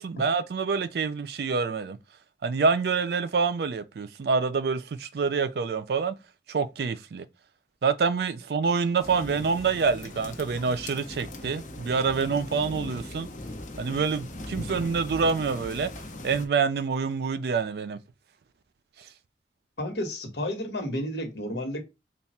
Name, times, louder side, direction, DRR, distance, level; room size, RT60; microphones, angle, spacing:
voice 1, 0.0-2.0 2.4-6.2 6.5-7.3 7.8-13.3 13.8-15.9 16.2-18.0, right 5 dB, 65° right, 0.4 m, -26 dB
sound 1, 9.0-16.5, left 1 dB, 45° left, 0.7 m, -39 dB
voice 2, 19.8-21.8, left 1 dB, 75° left, 1.1 m, -31 dB
3.3 x 2.3 x 4.2 m
head